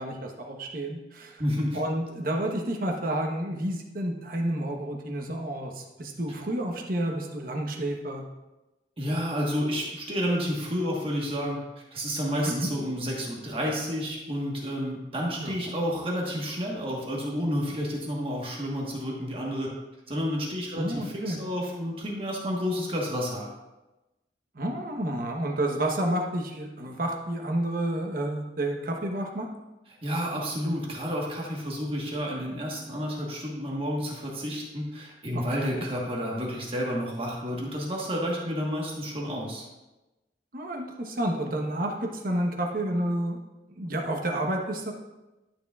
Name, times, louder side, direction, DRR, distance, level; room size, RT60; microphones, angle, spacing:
voice 1, 0.0-1.4 1.7-8.2 12.4-12.7 15.4-15.6 20.8-21.4 24.5-29.5 35.3-35.9 40.5-43.4 43.8-44.9, right 1 dB, 55° right, 1 dB, 1.1 m, -30 dB
voice 2, 1.4-1.8 9.0-11.6 11.9-19.7 20.1-23.5 30.0-39.6, equal, 30° right, -2 dB, 1.4 m, -30 dB
11.5 x 6.5 x 2.4 m, 1.0 s
head